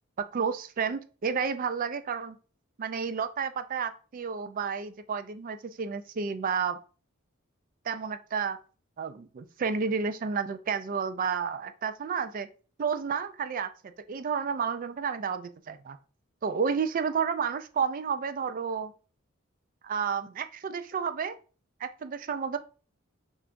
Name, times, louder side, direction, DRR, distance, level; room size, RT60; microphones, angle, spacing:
voice 1, 0.2-2.4 2.8-6.8 7.8-8.6 9.0-12.5 12.8-16.0 16.4-18.9 19.8-21.4 21.8-22.6, right 6 dB, 40° right, 10 dB, 0.3 m, -31 dB
6.6 x 2.4 x 2.5 m, 0.38 s
head